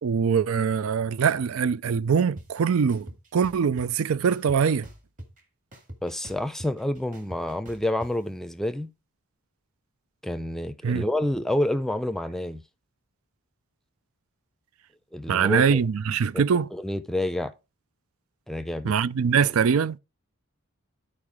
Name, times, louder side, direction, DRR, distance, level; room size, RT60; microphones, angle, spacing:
voice 1, 0.0-4.9 10.8-11.0 15.3-16.7 18.8-20.0, right 6 dB, 80° right, 0.4 m, -23 dB
sound 1, 2.4-2.5 2.9-3.9 4.3-5.4 5.7-8.1, right 1 dB, 35° right, 2.0 m, -43 dB
voice 2, 6.0-8.9 10.2-12.6 15.1-15.8 16.3-16.4 16.7-17.5 18.5-18.9, left 1 dB, ahead, 0.5 m, -28 dB
10.5 x 4.8 x 4.8 m
head